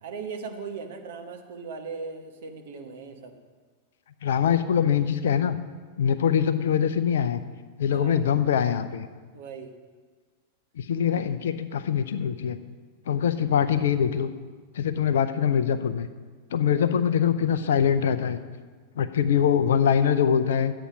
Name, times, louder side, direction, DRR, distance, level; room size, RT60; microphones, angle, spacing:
voice 1, 0.0-3.4 7.9-8.3 9.3-9.8 16.8-16.9, right 5 dB, 60° right, 4 dB, 1.2 m, -38 dB
voice 2, 4.2-5.6 6.0-7.4 7.8-9.1 10.8-12.6 13.1-14.3 14.8-16.1 16.5-18.4 19.0-20.7, left 8 dB, 60° left, 12 dB, 0.6 m, -23 dB
11.5 x 8.5 x 5.1 m, 1.5 s
figure-of-eight pair, 90°, 0 cm